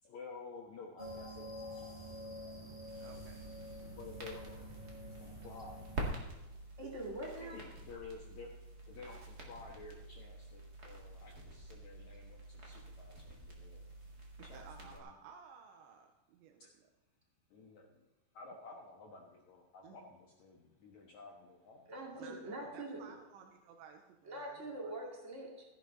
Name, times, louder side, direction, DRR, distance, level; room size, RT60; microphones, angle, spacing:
voice 1, 0.0-2.8 3.9-4.5 5.2-5.9 7.2-8.5 8.9-13.9 14.4-15.1 16.6-16.7 17.5-18.0 18.3-22.3 22.6-22.8, left 4 dB, 85° left, -1 dB, 1.6 m, -53 dB
sound 1, 1.0-6.1, equal, 15° right, 3.4 m, -48 dB
sound 2, 2.9-15.0, right 2 dB, 65° right, 0.9 m, -48 dB
voice 2, 3.0-3.4 3.8-3.9 14.4-16.9 19.8-20.0 22.1-24.9, right 6 dB, 80° right, 3 dB, 3.1 m, -56 dB
voice 3, 6.8-7.6 21.9-23.0 24.2-25.6, right 1 dB, 40° right, -1 dB, 1.0 m, -43 dB
16.0 x 11.0 x 4.0 m, 1.1 s
omnidirectional pair, 5.4 m